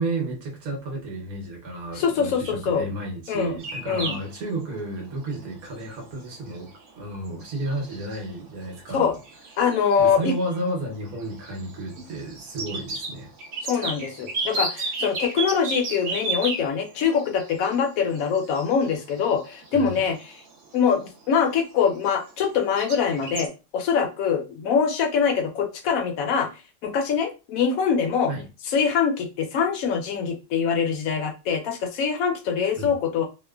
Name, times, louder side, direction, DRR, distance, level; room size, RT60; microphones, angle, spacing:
voice 1, 0.0-9.2 10.0-13.3 19.7-20.1 28.3-28.5 32.8-32.9, right 2 dB, 80° right, 1.3 m, -32 dB
voice 2, 1.9-2.9 3.3-3.6 3.9-4.2 8.9-9.1 9.6-10.3 13.6-20.3 20.7-26.5 26.8-28.3 28.7-33.3, left 6 dB, 75° left, 1.0 m, -24 dB
sound 1, 3.6-22.5 22.7-23.5, right 3 dB, 65° right, 1.1 m, -34 dB
3.0 x 2.1 x 2.2 m
omnidirectional pair, 1.5 m